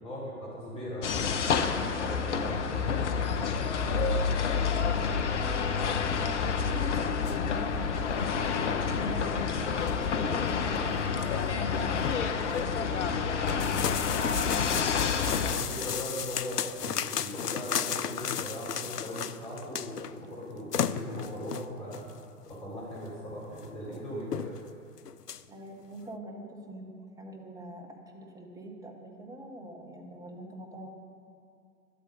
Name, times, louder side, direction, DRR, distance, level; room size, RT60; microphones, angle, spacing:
voice 1, 0.0-2.9 15.3-22.1 22.5-24.5, equal, 10° left, -7 dB, 3.6 m, -39 dB
sound 1, 1.0-15.6, left 6 dB, 50° left, 1.0 m, -29 dB
voice 2, 5.3-14.9 25.5-30.9, right 1 dB, 5° right, 1 dB, 1.1 m, -43 dB
sound 2, 7.3-7.4 7.9-8.1 8.4-8.5 9.1-9.2 9.6-10.1 10.5-10.6 10.9-11.0 11.3-11.5 11.8-12.7 13.5-20.1 20.4-20.5 20.7-22.1 23.0-23.1 23.5-23.7 23.9-24.0 24.3-24.7 25.0-25.4, left 8 dB, 80° left, 0.6 m, -34 dB
12.5 x 11.5 x 5.4 m, 2.4 s
figure-of-eight pair, 115°, 47 cm